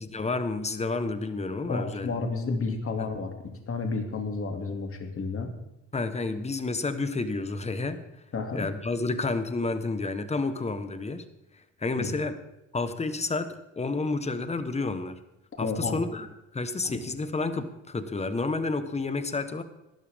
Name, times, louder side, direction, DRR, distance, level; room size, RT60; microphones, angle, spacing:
voice 1, 0.0-2.1 3.0-3.1 5.9-8.0 8.5-11.2 11.8-12.4 12.7-15.2 15.6-16.3 16.5-19.6, left 3 dB, 20° left, 10 dB, 1.3 m, -30 dB
voice 2, 1.6-3.3 3.7-5.5 8.3-8.7 12.0-12.1 15.6-16.0 16.8-17.0, left 4 dB, 45° left, 4 dB, 2.6 m, -31 dB
18.5 x 12.0 x 3.7 m, 0.92 s
cardioid pair, 90°, 30 cm